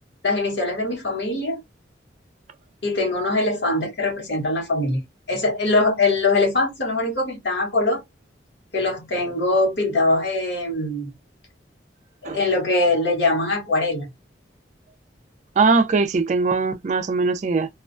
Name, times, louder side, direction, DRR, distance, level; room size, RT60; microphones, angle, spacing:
voice 1, 0.2-1.6 2.8-8.0 8.7-11.1 12.2-14.1, left 2 dB, 65° left, 1.1 m, -22 dB
voice 2, 15.6-17.7, right 4 dB, 40° right, 0.3 m, -20 dB
2.3 x 2.1 x 2.5 m
head